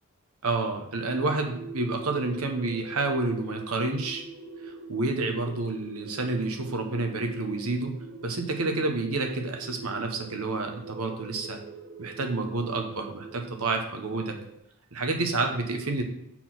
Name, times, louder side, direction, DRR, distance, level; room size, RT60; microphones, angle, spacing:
voice 1, 0.4-4.2 4.6-7.9 8.2-11.6 12.0-14.4 14.9-16.0, right 3 dB, 75° right, 4 dB, 1.1 m, -29 dB
sound 1, 0.9-14.6, right 4 dB, 50° right, 0.7 m, -44 dB
6.1 x 4.5 x 5.9 m, 0.74 s
head